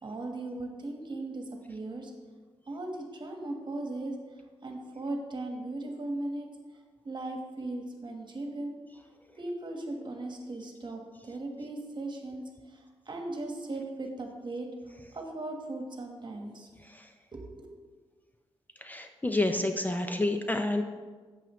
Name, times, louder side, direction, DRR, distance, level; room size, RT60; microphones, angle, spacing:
voice 1, 0.0-2.1 2.7-4.1 4.6-6.5 7.0-8.7 9.3-14.7 15.1-16.7 17.3-17.7, right 2 dB, 45° right, 2 dB, 1.3 m, -38 dB
voice 2, 18.8-20.8, left 2 dB, 15° left, 6 dB, 0.5 m, -29 dB
8.7 x 7.1 x 3.1 m, 1.4 s
wide cardioid pair, 90°, 11 cm